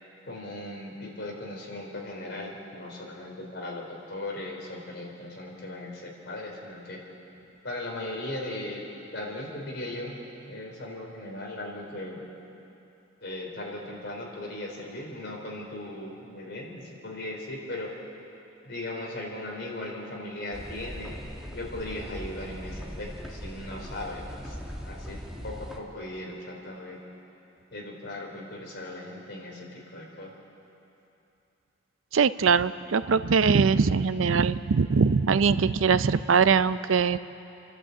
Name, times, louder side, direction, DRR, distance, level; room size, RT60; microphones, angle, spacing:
voice 1, 0.2-7.0 7.6-8.8 9.1-10.2 10.5-12.3 13.2-17.9 18.6-21.1 21.5-24.5 24.8-27.0 27.7-30.3, left 1 dB, 55° left, -1 dB, 4.2 m, -38 dB
sound 1, 20.5-25.8, equal, ahead, 1.7 m, -40 dB
voice 2, 32.1-37.2, right 5 dB, 75° right, 14 dB, 0.5 m, -22 dB
29.0 x 12.0 x 8.5 m, 2.9 s
head